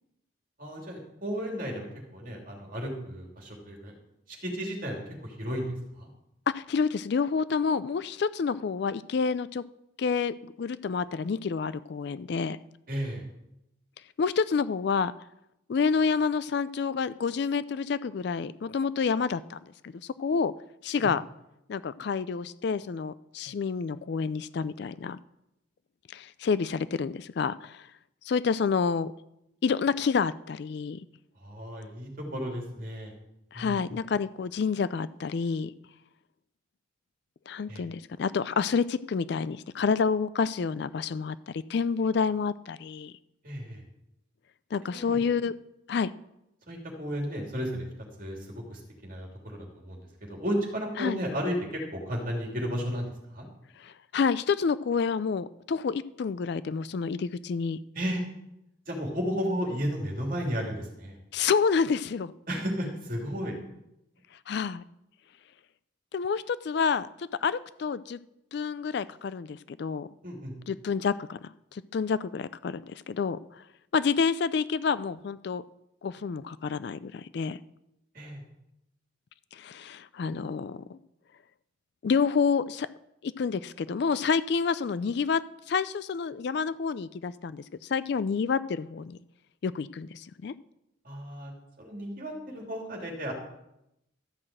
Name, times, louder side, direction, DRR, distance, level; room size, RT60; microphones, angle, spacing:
voice 1, 0.6-1.9 2.1-3.9 4.3-5.7 6.0-6.1 12.9-13.2 21.0-21.1 31.4-33.1 33.5-33.8 37.7-37.8 43.4-43.8 44.9-45.2 46.7-47.9 48.2-53.5 57.9-58.2 58.9-61.2 62.5-63.6 70.2-70.5 78.1-78.4 91.0-91.5 91.8-93.3, equal, 45° right, 0 dB, 2.9 m, -33 dB
voice 2, 6.5-9.6 10.0-12.6 14.2-15.1 15.7-20.5 20.8-21.2 21.7-25.2 26.1-27.9 28.2-29.1 29.6-31.0 33.5-35.7 37.5-43.1 44.7-45.5 45.9-46.1 51.0-51.2 53.8-57.8 61.3-62.3 64.5-64.8 66.1-68.2 68.5-70.1 70.7-73.6 73.9-75.6 76.0-77.6 79.5-81.0 82.0-82.9 83.2-89.2 89.6-90.5, left 5 dB, 55° left, 16 dB, 0.3 m, -28 dB
13.0 x 5.9 x 7.6 m, 0.85 s
head